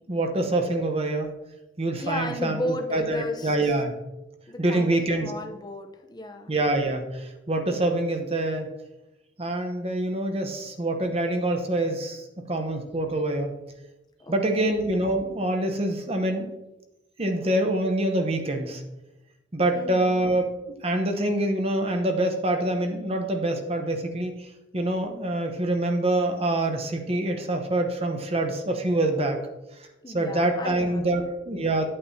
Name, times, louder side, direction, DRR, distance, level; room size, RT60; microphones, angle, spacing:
voice 1, 0.1-1.3 1.8-2.6 2.9-3.9 4.6-5.3 6.5-8.7 9.4-13.6 14.3-16.5 17.2-18.8 19.5-20.5 20.8-29.4 30.1-31.9, right 1 dB, 35° right, 4 dB, 0.9 m, -25 dB
voice 2, 2.0-3.8 4.5-6.5 14.2-14.7 19.7-20.2 30.0-31.3, left 1 dB, 20° left, 4 dB, 0.8 m, -34 dB
8.9 x 8.7 x 2.8 m, 0.98 s
head